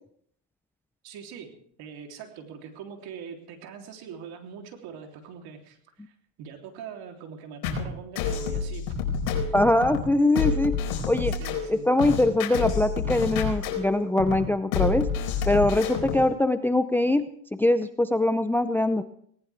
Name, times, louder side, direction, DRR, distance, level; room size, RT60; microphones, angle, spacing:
voice 1, 1.0-9.6 11.3-11.9, right 7 dB, 60° right, 3 dB, 3.5 m, -43 dB
sound 1, 7.6-16.3, left 5 dB, 80° left, 4.5 m, -28 dB
voice 2, 9.5-10.7 11.1-11.3 11.7-15.1 15.5-17.2 17.6-19.0, left 1 dB, 5° left, 11 dB, 0.6 m, -22 dB
19.5 x 18.5 x 3.5 m, 0.64 s
supercardioid pair, 115°, 42 cm